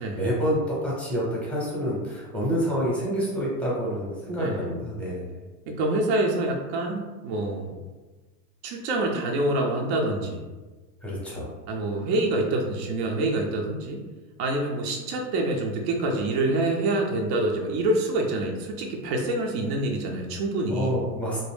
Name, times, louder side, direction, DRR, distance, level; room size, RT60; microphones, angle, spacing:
voice 1, 0.0-5.3 11.0-11.5 20.7-21.4, equal, 5° left, -6 dB, 0.7 m, -28 dB
voice 2, 4.3-4.7 5.7-7.8 8.6-10.4 11.7-14.0 14.4-20.9, right 2 dB, 45° right, 0 dB, 0.5 m, -26 dB
2.6 x 2.0 x 3.4 m, 1.3 s
hypercardioid pair, 120°, 49 cm